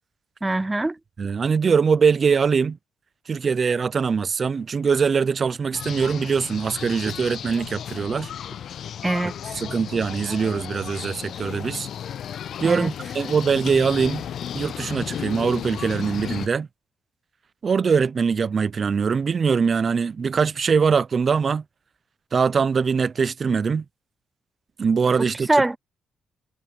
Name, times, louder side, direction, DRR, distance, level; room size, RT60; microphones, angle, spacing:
voice 1, 0.4-1.0 9.0-9.6 12.6-12.9 25.2-25.8, right 2 dB, 15° right, 0.5 m, -23 dB
voice 2, 1.2-2.8 3.3-8.3 9.6-11.9 12.6-14.2 14.5-16.7 17.6-21.6 22.3-23.8 24.8-25.5, right 5 dB, 40° right, 0.7 m, -22 dB
sound 1, 5.7-16.5, left 9 dB, 65° left, 0.4 m, -34 dB
cardioid pair, 90°, 0 cm